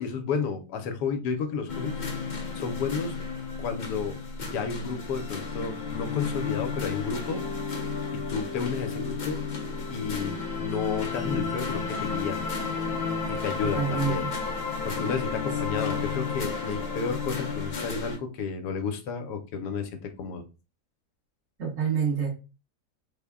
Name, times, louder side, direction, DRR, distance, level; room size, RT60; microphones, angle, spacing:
voice 1, 0.0-2.0 2.6-3.2 3.6-7.4 8.1-9.4 9.9-12.5 13.3-14.3 14.8-20.4, left 5 dB, 80° left, 7 dB, 1.2 m, -32 dB
sound 1, 1.7-18.2, left 5 dB, 65° left, 0.4 m, -32 dB
Mallet percussion, 7.3-16.0, left 2 dB, 35° right, 0.7 m, -43 dB
voice 2, 13.7-14.3 21.6-22.3, right 6 dB, 55° right, -6 dB, 1.4 m, -27 dB
3.6 x 2.1 x 3.4 m, 0.30 s
omnidirectional pair, 1.7 m